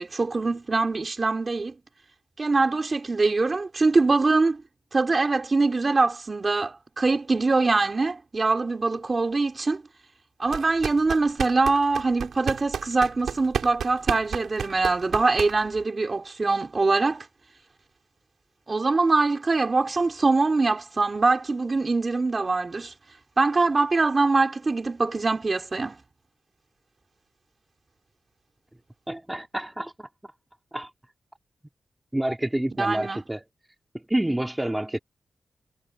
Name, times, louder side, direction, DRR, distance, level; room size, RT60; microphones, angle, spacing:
voice 1, 0.0-1.7 2.4-4.6 4.9-9.8 10.4-17.3 18.7-22.9 23.4-26.0 32.7-33.2, right 3 dB, 30° right, 4.4 m, -23 dB
sound 1, 10.5-15.8, right 7 dB, 90° right, 3.2 m, -32 dB
voice 2, 29.1-30.1 30.7-30.9 32.1-33.4 33.9-35.0, right 1 dB, 10° right, 3.1 m, -28 dB
wide cardioid pair, 135°, 0 cm